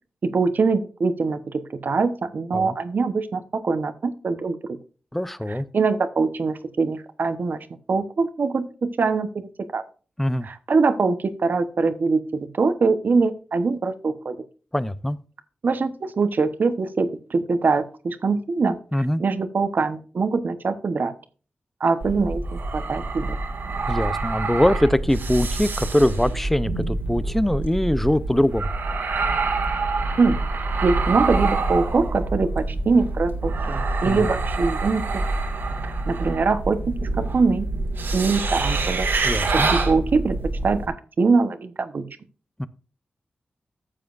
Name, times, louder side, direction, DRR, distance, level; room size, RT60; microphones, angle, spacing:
voice 1, 0.2-4.6 5.5-7.6 7.9-9.8 10.4-14.4 15.6-18.8 19.2-21.1 21.8-23.4 30.2-30.4 30.8-35.2 35.8-37.7 38.1-39.1 39.5-40.4 40.6-42.0, right 4 dB, 60° right, 10 dB, 1.0 m, -23 dB
voice 2, 5.1-5.7 10.2-10.5 14.7-15.2 18.9-19.2 23.9-28.7 34.1-34.3 39.2-39.7 42.6-42.7, left 1 dB, 5° left, 15 dB, 0.6 m, -22 dB
sound 1, 22.0-40.9, right 3 dB, 80° right, 2.2 m, -26 dB
14.0 x 7.5 x 2.5 m, 0.38 s
wide cardioid pair, 105°, 4 cm